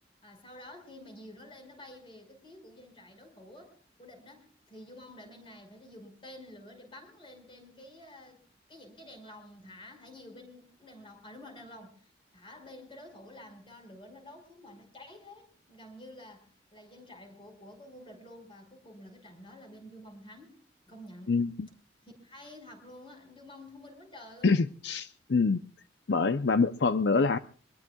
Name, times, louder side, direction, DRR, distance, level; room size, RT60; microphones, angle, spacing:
voice 1, 0.2-8.4 8.7-20.6 20.9-21.4 22.0-24.6, left 1 dB, 30° left, 4 dB, 5.2 m, -50 dB
voice 2, 21.3-21.7 24.4-25.6 26.1-27.4, left 4 dB, 70° left, 11 dB, 0.6 m, -25 dB
24.5 x 21.0 x 2.3 m, 0.43 s
head